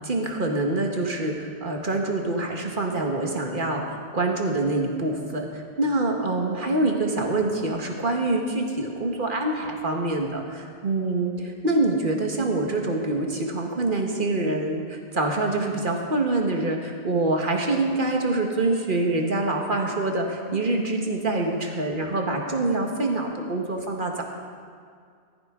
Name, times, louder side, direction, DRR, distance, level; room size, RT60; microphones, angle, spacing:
voice 1, 0.0-3.8 4.1-11.3 11.6-24.2, right 2 dB, 45° right, 2 dB, 1.6 m, -25 dB
16.0 x 13.5 x 3.7 m, 2.2 s
omnidirectional pair, 1.2 m